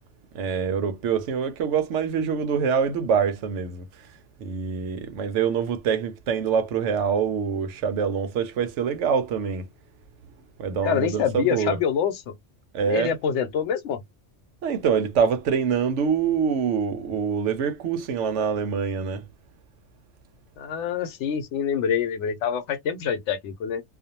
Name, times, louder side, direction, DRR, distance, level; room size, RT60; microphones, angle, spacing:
voice 1, 0.3-3.8 4.4-9.6 10.6-11.8 12.7-13.1 14.6-19.2, right 6 dB, 85° right, 0.9 m, -25 dB
voice 2, 10.8-12.3 12.8-14.0 20.6-23.8, left 7 dB, 75° left, 0.9 m, -26 dB
2.5 x 2.1 x 2.8 m
omnidirectional pair, 1.2 m